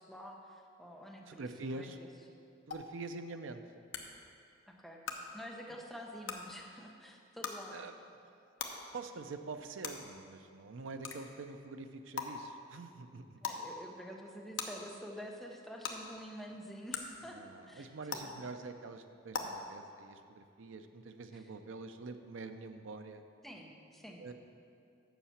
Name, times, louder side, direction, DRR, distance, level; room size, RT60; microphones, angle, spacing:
voice 1, 0.0-1.4 1.7-2.1 4.7-5.0 5.3-7.7 13.4-17.4 17.7-18.4 19.4-19.6 21.3-21.4 23.4-24.3, equal, ahead, 0 dB, 0.8 m, -48 dB
voice 2, 1.3-2.0 2.7-3.6 7.7-7.9 8.9-13.4 17.3-23.2 24.2-24.3, right 3 dB, 75° right, 8 dB, 0.5 m, -45 dB
sound 1, 2.7-2.8 3.9-4.0 5.0-5.1 6.2-6.3 7.4-7.5 8.6-8.7 9.8-9.9 11.0-11.2 12.2-12.3 13.4-13.6 14.6-14.7 15.8-15.9 16.9-17.0 18.1-18.2 19.3-19.4, left 6 dB, 70° left, 0.8 m, -37 dB
7.2 x 5.8 x 7.1 m, 2.4 s
head